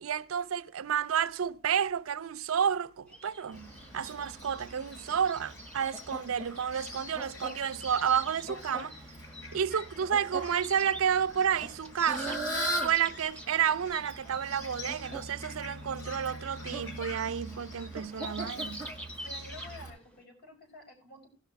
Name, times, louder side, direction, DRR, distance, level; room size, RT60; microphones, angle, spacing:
voice 1, 0.0-9.0 9.5-12.4 12.8-18.9, right 8 dB, 90° right, 0.5 m, -30 dB
sound 1, 3.1-20.2, right 1 dB, 5° left, 1.0 m, -48 dB
Fowl, 3.5-19.9, right 1 dB, 75° left, 5.9 m, -40 dB
voice 2, 19.2-21.3, left 2 dB, 50° left, 4.9 m, -50 dB
17.0 x 5.7 x 4.6 m
head